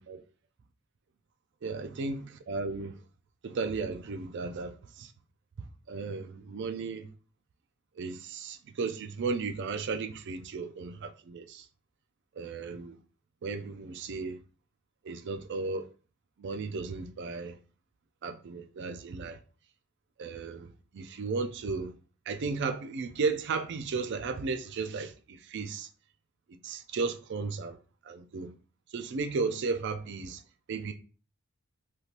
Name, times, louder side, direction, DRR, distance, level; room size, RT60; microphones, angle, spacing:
voice 1, 1.6-3.0 3.4-5.1 5.6-7.1 8.0-11.7 12.4-13.0 13.4-14.4 15.0-15.9 16.4-17.6 18.2-19.4 20.2-21.9 22.3-25.9 26.6-27.8 28.0-28.5 28.9-30.4 30.7-30.9, right 4 dB, 55° right, 0.4 m, -35 dB
3.3 x 2.8 x 2.5 m
head